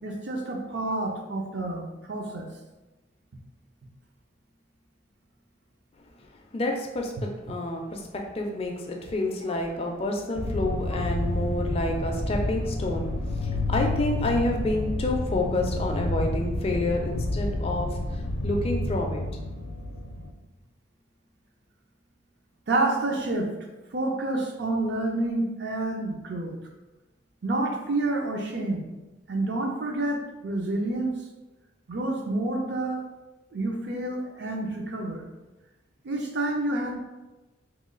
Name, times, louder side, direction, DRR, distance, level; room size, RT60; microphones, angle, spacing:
voice 1, 0.0-2.5 22.7-23.5 23.9-26.6 27.4-28.9 29.3-31.2 31.9-33.0 33.5-35.2 36.0-37.0, right 2 dB, 60° right, 1 dB, 0.5 m, -28 dB
voice 2, 6.5-13.1 13.4-19.2, left 1 dB, 30° left, 1 dB, 0.3 m, -29 dB
sound 1, 10.4-20.3, left 2 dB, 85° left, 0.5 m, -29 dB
3.0 x 2.2 x 3.7 m, 1.1 s
head